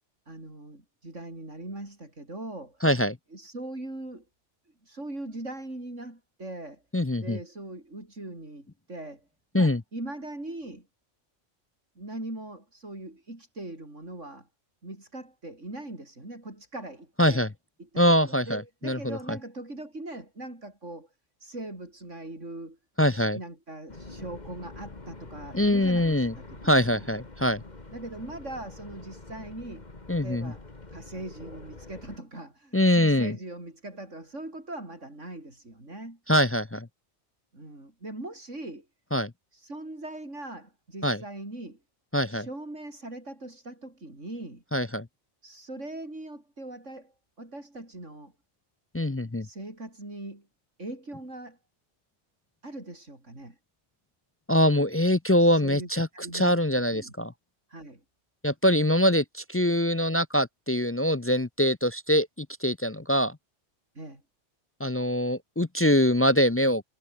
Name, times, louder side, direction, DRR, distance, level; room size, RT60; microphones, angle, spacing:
voice 1, 0.3-2.9 3.3-4.2 4.8-6.8 7.2-9.3 9.5-10.9 11.9-14.5 14.8-17.4 17.8-21.1 21.4-22.8 23.1-27.0 27.9-30.6 30.9-36.2 37.5-38.9 39.5-41.8 42.3-44.6 45.4-48.3 49.4-50.5 50.8-51.6 52.6-53.6 55.4-57.1 57.7-58.0 63.9-64.2, right 2 dB, 90° right, 6.9 m, -41 dB
voice 2, 2.8-3.2 6.9-7.4 9.5-9.8 17.2-17.5 18.0-19.4 23.0-23.4 25.5-26.3 26.6-27.6 30.1-30.5 32.7-33.3 36.3-36.9 39.1-39.3 41.0-41.2 42.1-42.5 44.7-45.1 48.9-49.5 54.5-56.1 56.3-57.3 58.4-63.4 64.8-66.8, left 1 dB, 20° left, 0.3 m, -23 dB
sound 1, 23.9-32.2, left 2 dB, 35° left, 2.6 m, -45 dB
omnidirectional pair, 1.2 m